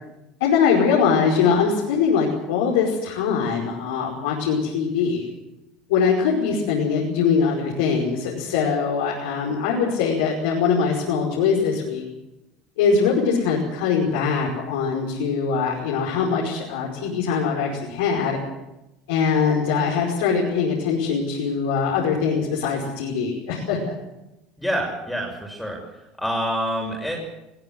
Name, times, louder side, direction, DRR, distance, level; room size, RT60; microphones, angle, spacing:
voice 1, 0.4-5.2 5.9-12.0 12.8-18.4 19.1-23.9, left 6 dB, 80° left, -2 dB, 5.3 m, -22 dB
voice 2, 24.6-25.8 26.2-27.2, equal, 5° left, 0 dB, 6.3 m, -26 dB
21.5 x 17.5 x 7.9 m, 0.94 s
hypercardioid pair, 90°, 0 cm